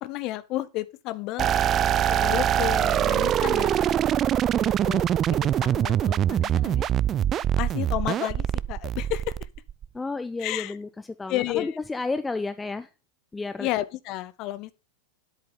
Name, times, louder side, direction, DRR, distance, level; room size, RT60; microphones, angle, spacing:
voice 1, 0.0-1.5 2.1-3.9 4.6-6.9 7.6-9.4 10.4-10.7 11.3-11.8 13.6-14.7, left 16 dB, 40° left, 0.8 m, -32 dB
sound 1, 1.4-9.8, right 10 dB, 30° right, 0.4 m, -23 dB
voice 2, 9.9-12.9 13.3-13.7, left 3 dB, 10° left, 0.7 m, -32 dB
10.5 x 8.2 x 3.8 m
figure-of-eight pair, 90°, 0 cm